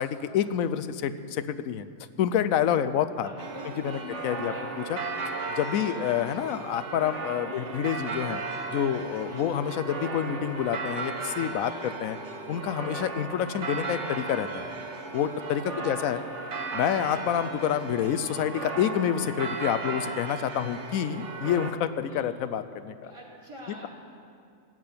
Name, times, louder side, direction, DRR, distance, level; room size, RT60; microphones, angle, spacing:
voice 1, 0.0-1.9 2.2-3.3 3.8-4.5 4.9-5.0 5.6-8.4 8.7-12.2 12.5-14.7 15.1-16.2 16.7-23.1, left 9 dB, 85° left, 12 dB, 1.0 m, -28 dB
voice 2, 3.2-4.1 4.3-4.7 5.8-6.0 7.5-7.7 9.3-9.5 15.7-16.3 22.0-22.3 23.0-23.9, right 1 dB, 20° right, -3 dB, 2.4 m, -44 dB
sound 1, 3.4-21.7, right 3 dB, 60° right, 1.4 m, -36 dB
17.0 x 6.2 x 8.5 m, 2.4 s
omnidirectional pair, 1.4 m